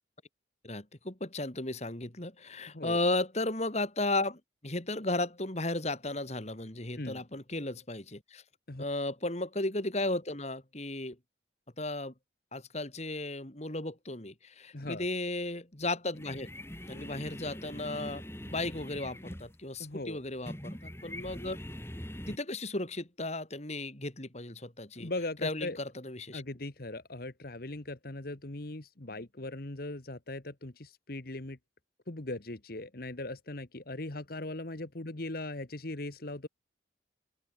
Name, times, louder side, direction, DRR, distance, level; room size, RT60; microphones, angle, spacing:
voice 1, 0.6-8.4 8.8-11.2 11.8-12.1 12.5-16.5 16.9-21.6 22.3-25.1 25.4-26.4, left 2 dB, 35° left, 2.6 m, -35 dB
voice 2, 2.7-3.0 7.0-7.2 8.7-8.8 14.7-15.1 19.8-20.2 25.0-25.8 26.3-31.6 32.1-36.5, left 2 dB, 50° left, 1.5 m, -39 dB
sound 1, 16.1-22.4, equal, 15° left, 4.2 m, -43 dB
open air
head